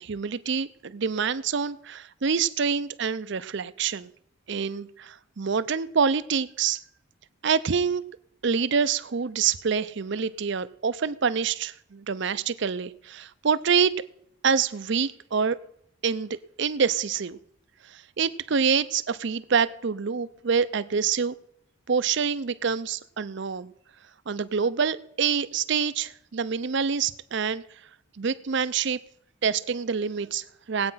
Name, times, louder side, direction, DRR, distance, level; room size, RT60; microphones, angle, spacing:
voice 1, 0.0-4.1 4.5-6.8 7.4-8.0 8.4-13.9 14.4-15.6 16.0-17.4 17.9-21.3 21.9-23.7 24.3-27.6 28.2-29.0 29.4-30.9, right 6 dB, 55° right, 0.5 m, -26 dB
18.0 x 8.7 x 5.6 m
head